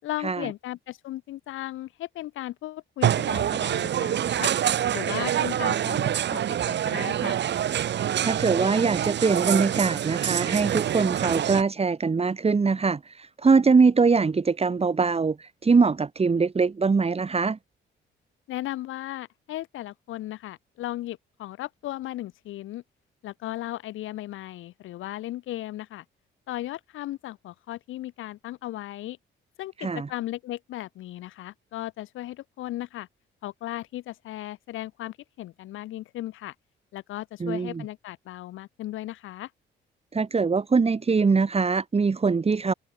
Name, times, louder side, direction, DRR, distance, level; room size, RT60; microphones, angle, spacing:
voice 1, 0.0-4.5 4.9-7.4 18.5-22.8 23.2-26.0 26.5-29.2 29.6-33.1 33.4-36.5 36.9-39.5, left 15 dB, 85° left, 6.7 m, -36 dB
sound 1, 3.0-11.6, right 10 dB, 60° right, 1.7 m, -26 dB
voice 2, 8.0-17.6 29.8-30.1 37.4-37.8 40.1-42.7, right 4 dB, 30° right, 3.2 m, -23 dB
cardioid pair, 90°, 20 cm